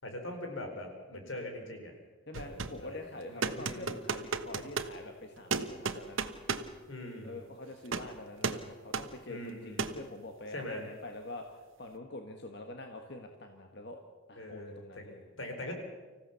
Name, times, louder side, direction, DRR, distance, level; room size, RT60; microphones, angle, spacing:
voice 1, 0.0-1.9 2.4-4.0 6.9-7.4 9.3-10.0 10.5-10.9 14.4-15.0 15.4-15.7, left 1 dB, 90° left, 4 dB, 4.2 m, -42 dB
voice 2, 2.3-6.3 7.2-11.5 11.8-14.0 14.3-15.3, left 2 dB, 55° left, 4 dB, 1.6 m, -45 dB
sound 1, 2.3-2.8 3.4-4.9 5.5-6.7 7.9-8.1 8.4-8.7 8.9-9.1 9.8-10.0, right 4 dB, 90° right, 1.2 m, -34 dB
25.5 x 15.5 x 7.0 m, 1.4 s
head